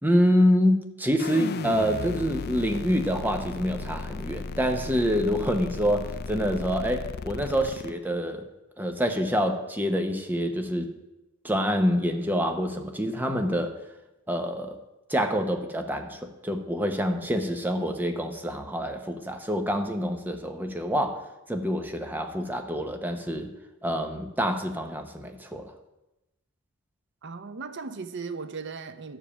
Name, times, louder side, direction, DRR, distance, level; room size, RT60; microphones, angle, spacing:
voice 1, 0.0-8.5 8.8-10.9 11.4-13.7 14.3-14.8 15.1-23.5 23.8-25.7, equal, 10° right, 0.9 m, -26 dB
sound 1, 1.2-7.9, left 4 dB, 45° left, 0.4 m, -35 dB
voice 2, 27.2-29.2, right 4 dB, 50° right, 0.6 m, -37 dB
11.5 x 5.1 x 7.0 m
head